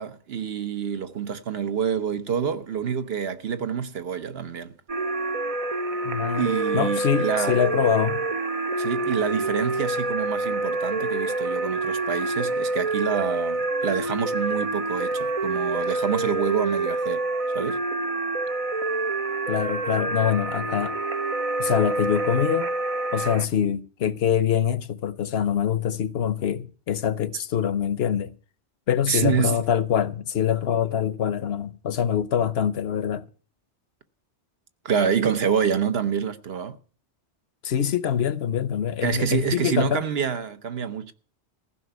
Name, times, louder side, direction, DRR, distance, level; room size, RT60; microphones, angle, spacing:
voice 1, 0.0-4.7 6.4-7.6 8.8-17.2 17.5-17.8 29.1-29.6 34.8-36.8 39.0-41.1, right 7 dB, 60° right, 1.1 m, -27 dB
sound 1, 4.9-23.5, right 2 dB, 40° right, 0.6 m, -27 dB
voice 2, 6.0-8.2 19.5-21.0 21.6-22.7 23.1-28.3 28.9-33.3 37.6-40.0, left 9 dB, 65° left, 1.0 m, -24 dB
15.5 x 5.9 x 9.3 m
omnidirectional pair, 1.2 m